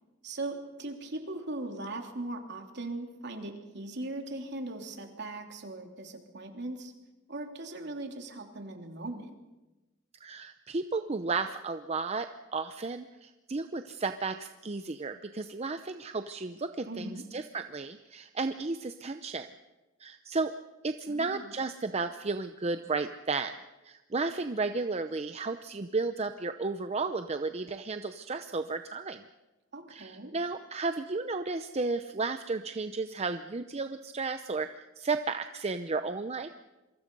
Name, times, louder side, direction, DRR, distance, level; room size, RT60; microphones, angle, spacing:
voice 1, 0.2-6.9 7.3-9.4 16.9-17.2 21.1-21.5 29.7-30.3, right 2 dB, 60° right, 3 dB, 3.1 m, -39 dB
voice 2, 10.2-19.5 20.0-20.5 20.8-23.5 23.8-29.2 29.9-34.7 35.0-36.5, right 3 dB, 35° right, 9 dB, 0.7 m, -33 dB
27.5 x 23.5 x 5.4 m, 1.1 s
head